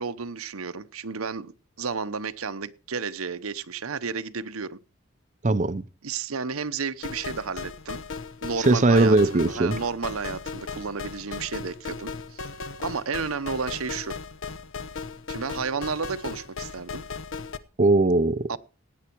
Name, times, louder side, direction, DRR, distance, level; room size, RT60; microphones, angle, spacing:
voice 1, 0.0-4.8 6.0-8.0 8.4-12.4 12.8-14.2 15.3-17.0 18.5-18.6, right 5 dB, 80° right, 0.9 m, -32 dB
voice 2, 5.4-5.8 8.6-9.8 17.8-18.5, right 2 dB, 35° right, 0.6 m, -20 dB
sound 1, 7.0-17.6, left 4 dB, 65° left, 0.9 m, -37 dB
17.0 x 9.7 x 4.6 m
head